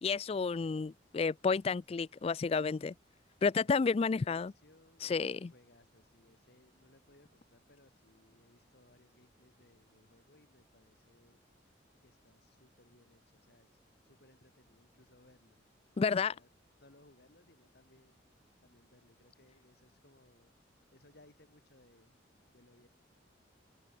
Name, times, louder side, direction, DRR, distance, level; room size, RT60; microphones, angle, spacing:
voice 1, 0.0-2.9 3.4-4.5 5.0-5.5 16.0-16.3, left 5 dB, 30° left, 0.3 m, -31 dB
voice 2, 3.6-11.4 12.0-15.6 16.0-16.5 16.8-18.2 18.6-20.5 20.9-22.2 22.5-22.9, left 1 dB, 60° left, 3.2 m, -65 dB
open air
head